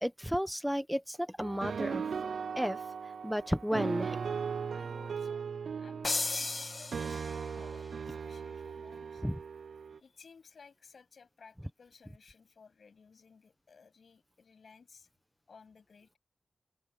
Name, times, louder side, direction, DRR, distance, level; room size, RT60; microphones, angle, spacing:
voice 1, 0.0-2.0 2.5-2.8 3.2-4.2 9.2-9.4, equal, ahead, 0.9 m, -32 dB
sound 1, 1.4-10.0, right 6 dB, 80° right, 0.4 m, -38 dB
voice 2, 4.7-5.5 5.8-9.2 9.9-15.1 15.5-16.2, left 5 dB, 70° left, 8.0 m, -58 dB
sound 2, 6.0-7.7, left 3 dB, 40° left, 2.2 m, -35 dB
open air
wide cardioid pair, 85°, 0 cm